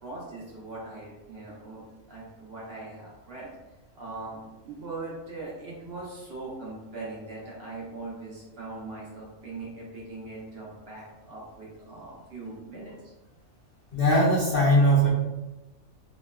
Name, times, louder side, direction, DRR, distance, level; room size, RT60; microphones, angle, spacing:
voice 1, 0.0-1.8 2.1-3.5 4.0-12.9, right 3 dB, 55° right, -5 dB, 0.8 m, -40 dB
voice 2, 13.9-15.1, equal, 55° left, -6 dB, 0.7 m, -20 dB
2.9 x 2.2 x 2.2 m, 1.0 s
omnidirectional pair, 1.4 m